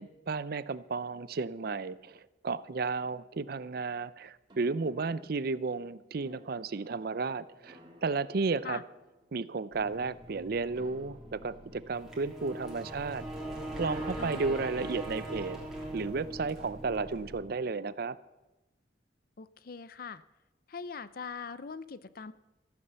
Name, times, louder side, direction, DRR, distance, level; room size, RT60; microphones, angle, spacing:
voice 1, 0.0-8.8 9.3-13.2 13.8-15.6 15.9-18.2, right 4 dB, 60° right, 17 dB, 0.5 m, -33 dB
sound 1, 4.5-11.9, equal, 25° right, 3.0 m, -59 dB
sound 2, 9.7-17.4, right 1 dB, 5° right, 3.3 m, -41 dB
voice 2, 14.2-14.5 19.4-20.2 20.7-22.3, left 5 dB, 55° left, 16 dB, 0.6 m, -42 dB
14.0 x 9.7 x 6.9 m, 1.0 s
head